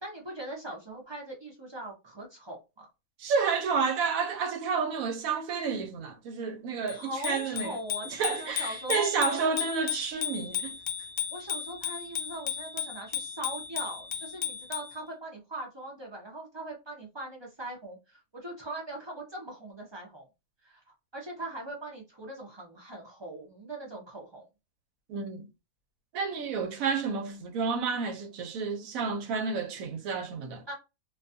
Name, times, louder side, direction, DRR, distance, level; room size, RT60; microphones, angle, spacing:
voice 1, 0.0-2.9 6.9-9.5 11.3-20.3 20.6-24.5 30.7-30.8, right 1 dB, 35° right, 0.4 m, -41 dB
voice 2, 3.2-7.8 8.2-10.8 25.1-25.5 26.1-30.6, right 5 dB, 90° right, 1.0 m, -30 dB
Bicycle bell, 6.9-15.0, left 8 dB, 65° left, 0.6 m, -35 dB
2.5 x 2.3 x 2.6 m
omnidirectional pair, 1.4 m